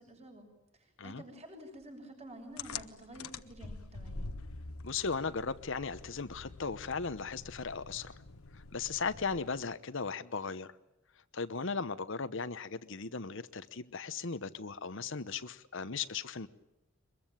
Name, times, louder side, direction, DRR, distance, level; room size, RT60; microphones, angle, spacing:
voice 1, 0.0-4.3, right 1 dB, 30° right, 3 dB, 6.7 m, -50 dB
sound 1, 2.6-9.7, left 4 dB, 85° left, 1.3 m, -46 dB
voice 2, 4.8-8.1 8.5-10.7 11.3-16.5, left 5 dB, 60° left, 12 dB, 1.0 m, -37 dB
24.0 x 22.0 x 9.0 m, 0.92 s
head